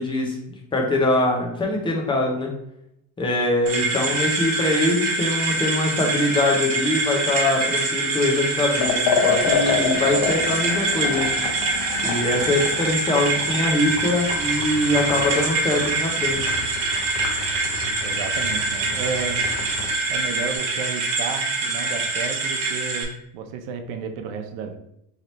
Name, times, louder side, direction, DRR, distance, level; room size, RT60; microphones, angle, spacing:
voice 1, 0.0-2.5 3.2-11.3 12.0-16.5, left 2 dB, 10° left, 0 dB, 0.4 m, -23 dB
sound 1, 3.7-23.0, right 3 dB, 45° right, 1.0 m, -25 dB
Liquid, 8.7-20.0, left 5 dB, 60° left, 0.8 m, -29 dB
voice 2, 18.0-19.4 20.1-24.8, right 5 dB, 90° right, 6 dB, 0.8 m, -32 dB
3.2 x 2.9 x 3.9 m, 0.78 s
cardioid pair, 170°, 46 cm